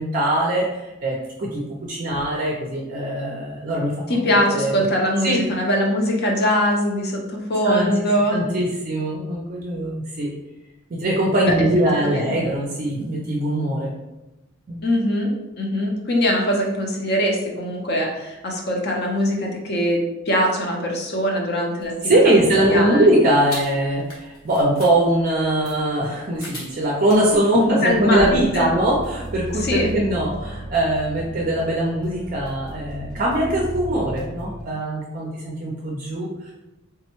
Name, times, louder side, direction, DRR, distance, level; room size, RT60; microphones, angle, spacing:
voice 1, 0.0-1.6 1.9-3.9 4.5-4.8 5.2-5.4 7.6-7.9 8.3-10.3 10.9-13.9 14.7-14.8 22.0-36.5, right 1 dB, 40° right, -3 dB, 0.4 m, -21 dB
voice 2, 4.1-8.4 11.4-11.5 11.9-12.3 14.8-22.3 22.7-23.1 27.5-28.7 29.6-29.9, equal, 50° left, 0 dB, 0.6 m, -22 dB
sound 1, 21.8-28.5, left 1 dB, 75° left, 1.1 m, -40 dB
sound 2, 27.9-34.6, right 2 dB, 5° left, 0.6 m, -35 dB
3.5 x 2.1 x 2.9 m, 0.99 s
head